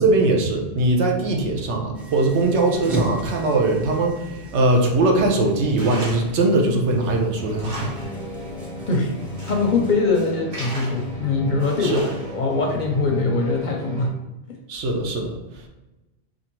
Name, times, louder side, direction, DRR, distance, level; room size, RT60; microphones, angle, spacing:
voice 1, 0.0-7.9 11.8-12.0 14.7-15.7, right 2 dB, 85° right, 2 dB, 1.0 m, -21 dB
sound 1, 1.9-9.9, right 2 dB, ahead, 0.5 m, -36 dB
Tools, 5.8-6.4 6.8-6.9 7.4-8.2 8.5-8.6 9.2-9.7 10.1-11.1 11.6-12.5, right 1 dB, 55° right, 1.4 m, -37 dB
sound 2, 7.4-14.1, left 1 dB, 30° right, 1.1 m, -35 dB
voice 2, 9.5-14.1, left 3 dB, 55° left, 1 dB, 0.6 m, -22 dB
4.4 x 2.6 x 2.9 m, 1.0 s
omnidirectional pair, 1.1 m